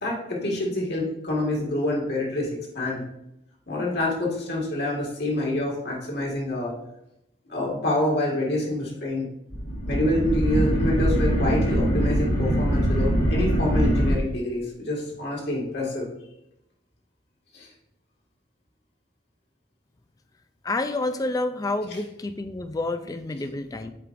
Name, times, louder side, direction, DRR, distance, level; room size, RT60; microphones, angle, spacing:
voice 1, 0.0-3.0 3.7-6.8 7.5-9.3 9.9-16.1 17.5-17.7 21.9-22.0, left 1 dB, 55° left, -3 dB, 1.9 m, -27 dB
sound 1, 9.5-14.1, equal, 75° left, 2.2 m, -23 dB
voice 2, 20.6-23.9, left 2 dB, 20° left, 9 dB, 0.3 m, -29 dB
7.8 x 4.8 x 2.5 m, 0.84 s
head